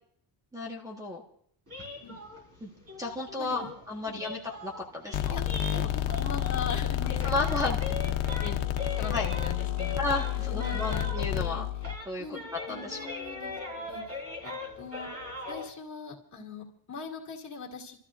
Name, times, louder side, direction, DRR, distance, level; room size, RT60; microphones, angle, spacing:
voice 1, 0.5-1.2 2.6-2.7 3.0-5.4 7.2-7.8 9.1-9.3 10.0-11.6 12.0-12.2 12.7-13.0, left 2 dB, 5° right, -1 dB, 1.5 m, -33 dB
sound 1, 1.7-6.8 7.0-11.5 11.8-15.7, left 2 dB, 30° right, 4.0 m, -40 dB
voice 2, 3.4-3.7 4.1-4.2 5.3-5.4 5.7-7.6 8.0-8.6 9.0-10.0 10.5-11.7 12.2-15.1 15.5-18.0, left 4 dB, 35° left, -1 dB, 2.5 m, -41 dB
sound 2, 5.1-12.0, left 12 dB, 90° left, 0.9 m, -30 dB
29.5 x 13.5 x 2.5 m, 0.67 s
cardioid pair, 150°, 47 cm